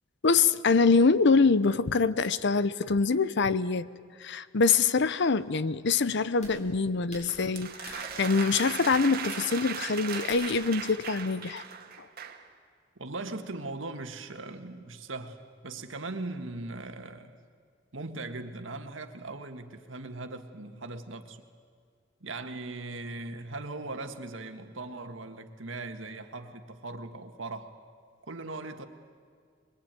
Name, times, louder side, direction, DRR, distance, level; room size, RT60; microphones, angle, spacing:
voice 1, 0.2-3.9 4.2-11.6 12.0-12.1, left 4 dB, 65° left, 0.7 m, -25 dB
sound 1, 4.9-10.7, left 1 dB, 40° left, 7.4 m, -50 dB
sound 2, 7.3-12.5, right 7 dB, 50° right, 1.8 m, -38 dB
voice 2, 13.0-15.4 15.6-17.4 17.9-21.4 22.2-27.7 28.3-28.9, right 2 dB, 75° right, 1.8 m, -39 dB
23.5 x 22.5 x 9.1 m
head